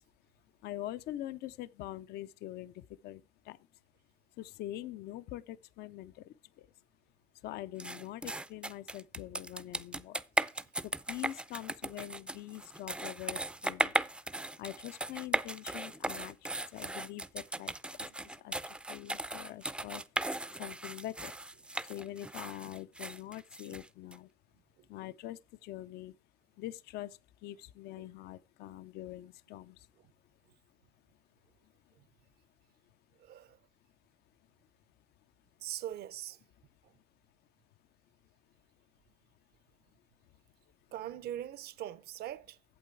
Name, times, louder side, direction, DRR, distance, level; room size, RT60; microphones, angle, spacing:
voice 1, 0.6-3.6 4.4-6.7 7.3-10.2 10.8-14.0 14.6-20.3 20.6-21.3 21.8-24.3 24.9-26.2 26.6-29.9, left 14 dB, 70° left, 0.4 m, -44 dB
sound 1, 7.8-24.2, right 2 dB, 5° right, 0.4 m, -37 dB
voice 2, 33.2-33.6 35.6-36.4 40.9-42.6, right 12 dB, 70° right, 0.7 m, -41 dB
8.7 x 7.6 x 4.5 m
cardioid pair, 110°, 17 cm